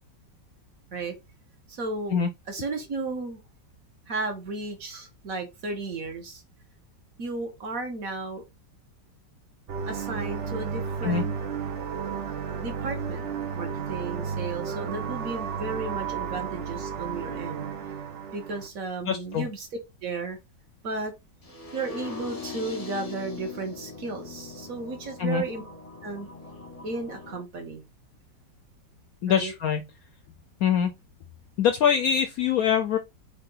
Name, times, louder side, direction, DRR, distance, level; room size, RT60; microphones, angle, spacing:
voice 1, 1.7-2.2 2.4-3.4 4.1-6.4 7.2-8.4 9.9-11.3 12.6-13.2 13.6-17.7 18.3-19.7 20.0-20.4 20.8-21.1 21.7-25.6 26.0-26.3 26.8-27.8 29.3-29.5, right 3 dB, 50° right, 1.4 m, -34 dB
sound 1, 9.7-18.7, right 6 dB, 80° right, 0.6 m, -33 dB
voice 2, 19.1-19.5 25.2-25.4 29.2-29.8 30.6-30.9 31.6-33.0, left 8 dB, 70° left, 0.8 m, -23 dB
sound 2, 21.4-27.4, left 4 dB, 30° left, 0.7 m, -41 dB
4.8 x 2.7 x 3.8 m
omnidirectional pair, 2.0 m